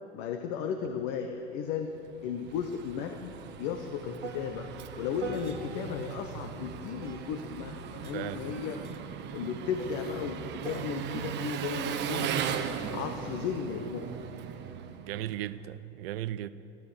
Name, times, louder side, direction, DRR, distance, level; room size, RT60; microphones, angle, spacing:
voice 1, 0.1-1.9 2.2-4.7 5.0-8.8 9.3-12.3 12.9-14.1, left 7 dB, 45° left, 1.2 m, -35 dB
sound 1, 0.8-1.0 1.3-6.1 7.0-12.6 13.4-13.8, right 4 dB, 85° right, 1.4 m, -46 dB
Engine, 2.0-15.5, right 8 dB, 30° right, 1.1 m, -38 dB
voice 2, 8.1-8.5 14.9-16.5, right 13 dB, 55° right, 0.6 m, -36 dB
14.0 x 13.5 x 7.1 m
figure-of-eight pair, 95°, 34 cm